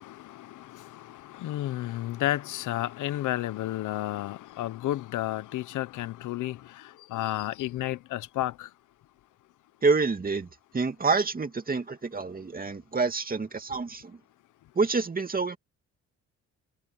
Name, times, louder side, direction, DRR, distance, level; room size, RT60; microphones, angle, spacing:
voice 1, 0.0-6.6 7.1-8.7, left 15 dB, 85° left, 1.2 m, -32 dB
voice 2, 9.8-10.5 10.7-14.2 14.8-15.6, right 4 dB, 30° right, 2.5 m, -27 dB
cardioid pair, 90°, 30 cm